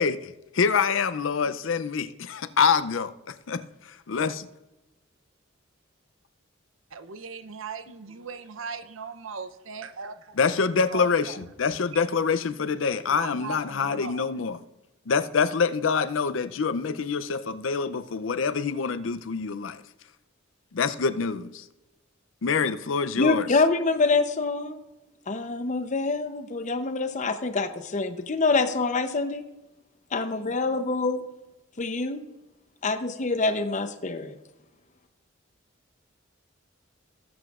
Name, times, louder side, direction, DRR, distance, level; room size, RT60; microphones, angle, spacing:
voice 1, 0.0-4.5 10.4-14.6 15.1-19.8 20.7-21.6 22.4-23.5, left 5 dB, 75° left, 0.5 m, -26 dB
voice 2, 6.9-10.4 10.9-11.4 12.9-14.3, right 5 dB, 90° right, 0.7 m, -38 dB
voice 3, 23.2-24.8 25.3-29.4 30.1-31.2 31.8-32.2 32.8-34.4, left 3 dB, 40° left, 0.7 m, -26 dB
18.0 x 7.8 x 2.4 m
head